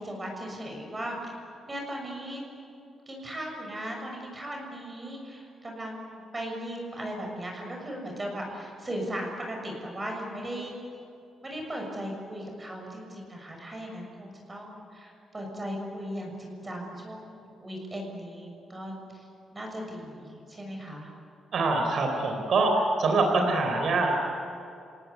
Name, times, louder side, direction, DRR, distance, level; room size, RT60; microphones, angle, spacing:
voice 1, 0.0-2.4 3.1-10.7 11.4-19.3 19.5-21.1, equal, 20° right, 0 dB, 6.6 m, -37 dB
voice 2, 21.5-24.1, right 3 dB, 60° right, 2 dB, 4.1 m, -24 dB
29.0 x 18.5 x 9.5 m, 2.6 s
cardioid pair, 115°, 0 cm